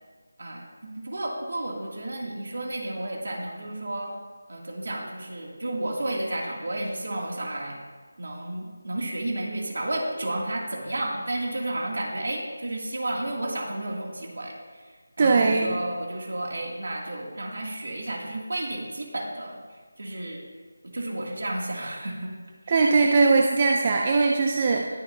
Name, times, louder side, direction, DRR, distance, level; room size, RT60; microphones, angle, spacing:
voice 1, 0.4-4.1 4.5-7.8 8.2-14.9 15.2-19.6 20.0-20.4 20.9-22.3 22.7-22.8, right 1 dB, 65° right, -1 dB, 2.6 m, -32 dB
voice 2, 15.2-15.7 22.7-24.9, right 4 dB, 20° right, 2 dB, 0.5 m, -20 dB
20.0 x 6.8 x 2.8 m, 1.4 s
figure-of-eight pair, 175°, 0 cm